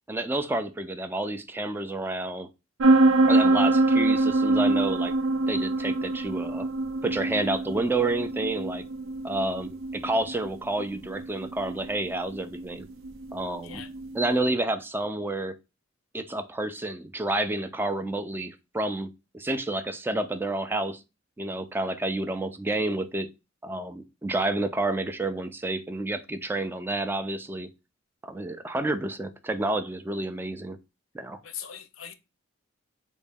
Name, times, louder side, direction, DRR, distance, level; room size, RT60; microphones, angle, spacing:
voice 1, 0.1-2.5 3.3-5.1 5.5-6.7 7.0-8.8 9.2-12.9 13.3-13.8 14.1-15.5 16.1-21.0 21.4-23.3 23.6-27.7 28.2-30.8 31.1-31.4, right 2 dB, 10° right, 0.3 m, -29 dB
sound 1, 2.8-14.3, right 2 dB, 85° right, 0.5 m, -25 dB
voice 2, 31.4-32.1, left 9 dB, 85° left, 0.5 m, -40 dB
3.8 x 2.1 x 3.4 m
head